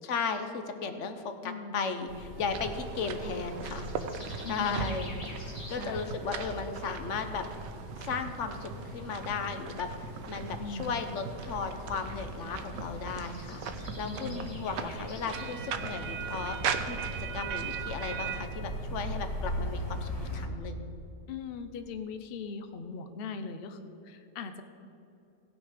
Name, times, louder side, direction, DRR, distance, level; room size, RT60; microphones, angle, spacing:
voice 1, 0.0-3.9 4.5-5.2 5.7-7.4 8.0-16.6 16.9-17.0 17.3-20.9, left 5 dB, 55° left, 8 dB, 0.9 m, -35 dB
voice 2, 1.4-2.1 4.4-4.9 5.8-6.1 10.6-11.0 14.0-14.7 21.3-24.6, left 4 dB, 80° left, 8 dB, 0.5 m, -40 dB
sound 1, 2.1-20.5, equal, 25° left, 1.5 m, -41 dB
sound 2, 2.5-18.4, right 6 dB, 65° right, 1.0 m, -39 dB
17.0 x 6.3 x 5.0 m, 2.8 s
omnidirectional pair, 1.8 m